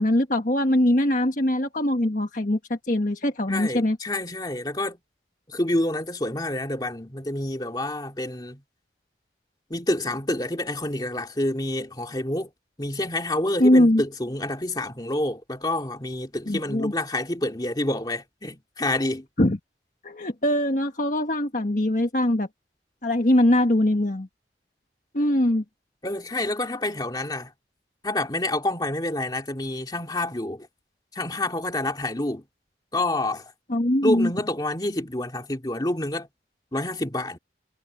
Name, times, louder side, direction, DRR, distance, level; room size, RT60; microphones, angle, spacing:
voice 1, 0.0-4.0 13.6-14.0 16.5-16.9 19.4-19.6 20.0-22.5 23.0-24.3 25.1-25.6 33.7-34.3, left 1 dB, 45° left, 1.5 m, -22 dB
voice 2, 3.5-5.0 5.5-8.6 9.7-12.5 12.8-19.3 26.0-27.5 28.0-30.7 31.1-32.4 32.9-33.4 34.0-36.3 36.7-37.4, left 1 dB, 25° left, 2.3 m, -28 dB
head